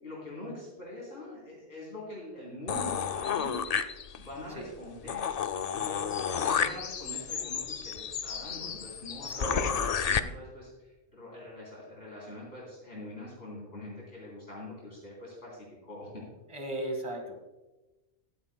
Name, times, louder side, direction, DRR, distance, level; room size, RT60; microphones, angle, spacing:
voice 1, 0.0-3.8 4.2-5.3 5.7-16.2, left 1 dB, 55° left, -6 dB, 3.8 m, -44 dB
sound 1, 2.7-4.4 4.8-4.9 5.1-10.2, left 7 dB, 75° left, 0.3 m, -31 dB
voice 2, 9.2-9.8 16.5-17.4, right 1 dB, 25° right, 3 dB, 1.7 m, -36 dB
16.0 x 12.0 x 2.2 m, 1.1 s
omnidirectional pair, 1.3 m